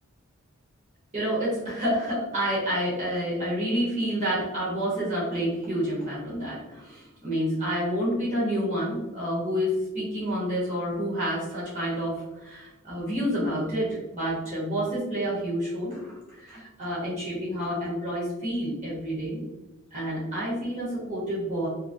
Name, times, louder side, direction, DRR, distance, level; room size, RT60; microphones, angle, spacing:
voice 1, 1.1-19.4 19.9-21.7, equal, 30° right, -8 dB, 0.9 m, -29 dB
2.7 x 2.5 x 2.6 m, 1.1 s
head